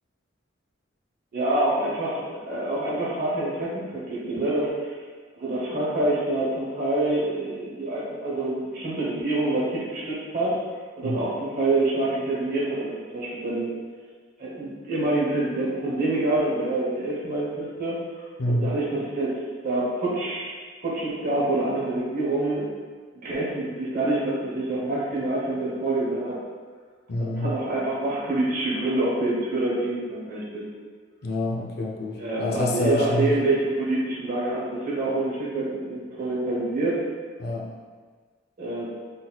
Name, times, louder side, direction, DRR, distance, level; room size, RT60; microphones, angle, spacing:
voice 1, 1.3-4.9 5.3-10.6 11.0-13.7 14.4-18.0 18.4-20.5 20.8-22.6 23.2-26.4 27.2-30.7 32.2-37.0 38.6-38.9, right 2 dB, 45° right, -6 dB, 0.8 m, -26 dB
voice 2, 18.4-18.7 27.1-27.5 31.2-33.3 37.4-37.7, left 1 dB, 55° left, -1 dB, 0.5 m, -27 dB
4.0 x 4.0 x 2.2 m, 1.5 s
head